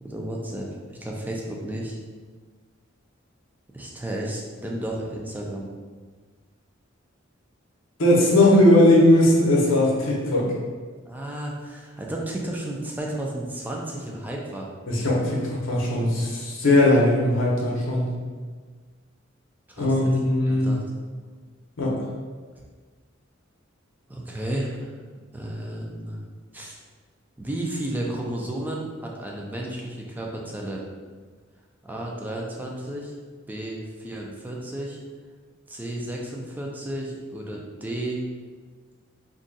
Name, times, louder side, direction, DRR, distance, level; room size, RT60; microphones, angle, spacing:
voice 1, 0.0-2.0 3.7-5.7 11.1-14.7 19.7-19.9 20.5-20.8 24.1-24.9 25.3-26.2 26.5-26.8 27.4-30.8 31.8-33.1 33.5-35.0 35.7-38.2, right 1 dB, 10° right, -2 dB, 0.4 m, -32 dB
voice 2, 8.0-10.5 14.9-18.1 19.8-20.8 21.8-22.0, left 1 dB, 75° left, -4 dB, 0.7 m, -19 dB
2.6 x 2.3 x 3.9 m, 1.5 s
head